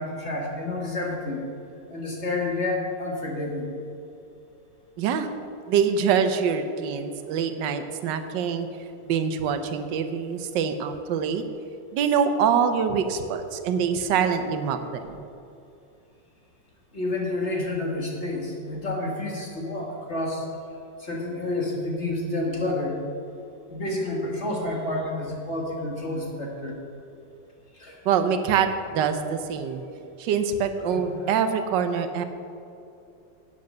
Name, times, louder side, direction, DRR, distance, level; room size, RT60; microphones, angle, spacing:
voice 1, 0.0-1.4 1.9-3.7 16.9-20.5 21.0-23.0 23.7-26.8 27.7-28.0 30.8-31.0, left 2 dB, 40° left, -2 dB, 1.8 m, -29 dB
voice 2, 5.0-5.3 5.7-8.7 9.1-11.4 11.9-15.3 28.0-29.8 30.2-32.2, right 7 dB, 75° right, 8 dB, 1.4 m, -25 dB
10.5 x 8.3 x 6.6 m, 2.7 s
omnidirectional pair, 2.0 m